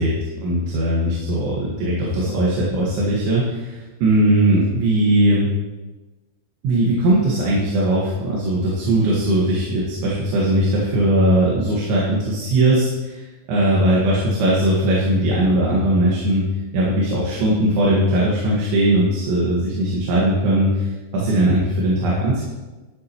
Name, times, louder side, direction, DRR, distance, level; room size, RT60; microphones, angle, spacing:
voice 1, 0.4-5.5 6.6-16.5 16.7-22.4, right 1 dB, 80° right, -5 dB, 4.1 m, -19 dB
12.5 x 11.5 x 3.1 m, 1.2 s
omnidirectional pair, 5.4 m